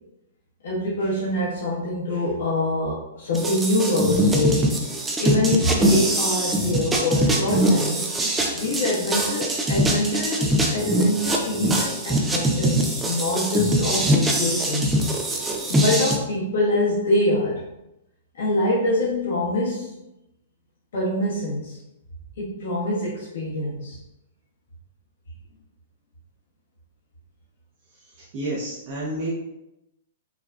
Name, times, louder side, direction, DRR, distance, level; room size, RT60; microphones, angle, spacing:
voice 1, 0.6-4.7 5.2-8.0 8.5-15.0 15.7-17.6 18.3-19.9 20.9-21.8 22.4-24.0, left 1 dB, 60° left, -8 dB, 1.4 m, -25 dB
sound 1, 3.3-16.2, right 1 dB, 10° right, 0.7 m, -22 dB
voice 2, 28.2-29.3, right 1 dB, 40° right, -7 dB, 1.1 m, -30 dB
5.9 x 3.5 x 2.4 m, 0.92 s
figure-of-eight pair, 110°, 0 cm